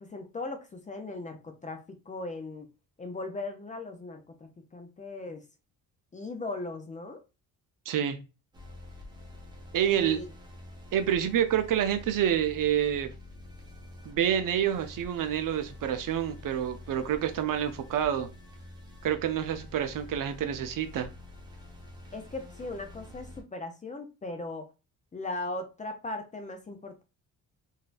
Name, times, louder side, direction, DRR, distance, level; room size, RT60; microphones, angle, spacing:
voice 1, 0.0-2.7 3.0-5.4 6.1-7.2 9.8-10.3 22.1-24.7 25.1-27.0, left 2 dB, 20° left, 0.4 m, -38 dB
voice 2, 7.9-8.2 9.7-10.2 10.9-13.1 14.1-18.3 19.0-21.1, right 10 dB, 60° right, 0.6 m, -28 dB
sound 1, 8.5-23.4, left 2 dB, 10° right, 0.8 m, -47 dB
3.9 x 2.6 x 2.4 m
cardioid pair, 170°, 37 cm